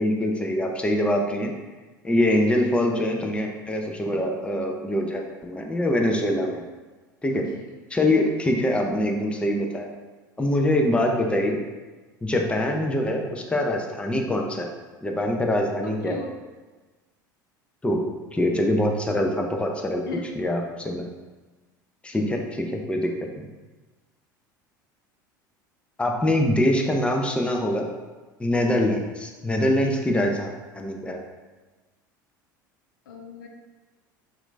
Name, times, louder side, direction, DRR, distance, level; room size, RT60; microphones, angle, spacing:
voice 1, 0.0-1.5 2.0-6.6 7.2-7.5 7.9-9.9 10.4-11.6 12.2-14.7 15.0-16.2 17.8-18.0 18.3-20.0 20.4-21.0 22.0-23.1 23.4-23.5 26.0-27.9 28.4-31.2, left 1 dB, 10° left, 2 dB, 0.7 m, -24 dB
voice 2, 7.3-7.8 15.8-16.3 20.1-20.4 29.8-29.9 33.1-33.5, left 2 dB, 75° left, 2 dB, 0.7 m, -36 dB
6.0 x 2.6 x 3.3 m, 1.3 s
hypercardioid pair, 75°, 11 cm